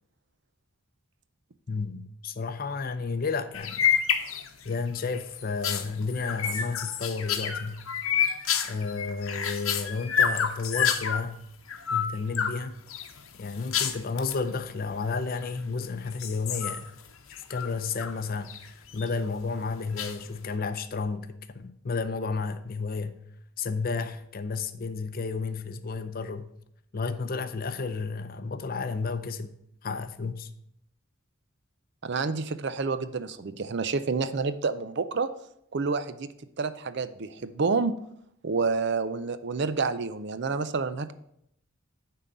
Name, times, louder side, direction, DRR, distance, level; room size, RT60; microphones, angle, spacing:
voice 1, 1.7-3.9 4.6-7.8 8.6-11.4 11.9-12.8 13.4-16.9 17.3-23.2 23.6-26.5 26.9-29.6 29.8-30.5, left 4 dB, 45° left, 0.5 m, -32 dB
sound 1, 3.5-4.7 5.1-11.3 11.7-12.6 12.9-14.4 15.2-15.8 16.1-18.2 18.5-19.1 20.0-20.5, left 8 dB, 75° left, 0.9 m, -29 dB
voice 2, 32.0-35.3 35.7-36.3 36.6-37.9 38.4-41.1, right 4 dB, 55° right, 0.5 m, -28 dB
9.7 x 3.8 x 6.7 m
head